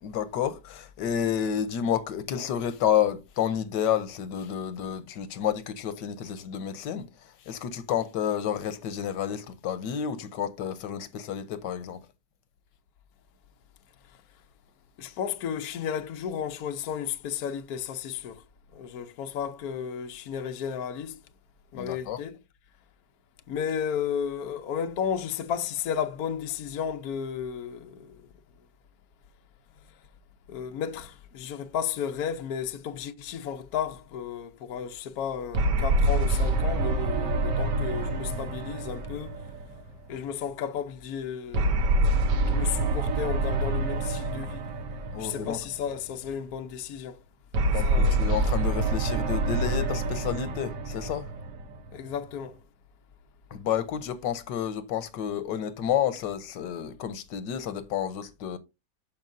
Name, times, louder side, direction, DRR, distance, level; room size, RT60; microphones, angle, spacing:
voice 1, 0.0-7.1 7.5-12.0 21.7-22.2 45.1-45.6 47.6-51.3 53.5-58.6, left 9 dB, 85° left, 1.4 m, -30 dB
voice 2, 15.0-18.4 18.7-21.2 21.7-22.4 23.5-28.2 30.5-39.4 40.1-42.0 42.3-44.6 45.2-47.2 47.8-48.2 51.9-52.5, left 8 dB, 65° left, 1.2 m, -33 dB
sound 1, 35.5-40.1 41.5-45.9 47.5-52.1, right 2 dB, 85° right, 1.6 m, -26 dB
13.0 x 4.7 x 2.6 m
omnidirectional pair, 1.8 m